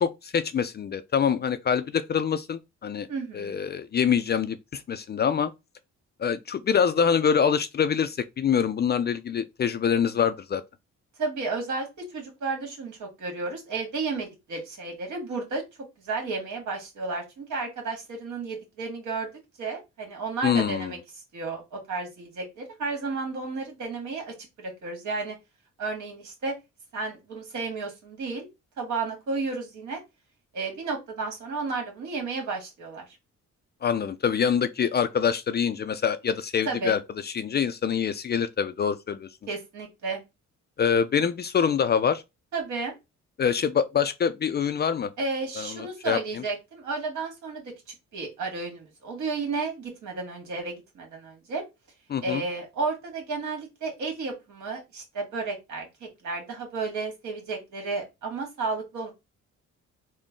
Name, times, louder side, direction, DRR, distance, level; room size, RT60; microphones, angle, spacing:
voice 1, 0.0-3.1 3.3-5.5 6.2-10.6 20.4-20.9 33.8-39.3 40.8-42.2 43.4-45.1 45.6-46.4 52.1-52.4, left 7 dB, 35° left, 0.4 m, -25 dB
voice 2, 3.1-3.7 11.2-15.6 16.0-19.3 19.6-21.0 21.3-25.4 25.8-26.5 26.9-28.5 28.8-30.0 30.5-33.1 36.7-37.0 39.5-40.2 42.5-42.9 45.2-51.6 52.2-59.1, right 3 dB, 70° right, 1.8 m, -32 dB
3.7 x 2.1 x 3.7 m
cardioid pair, 90°, 30 cm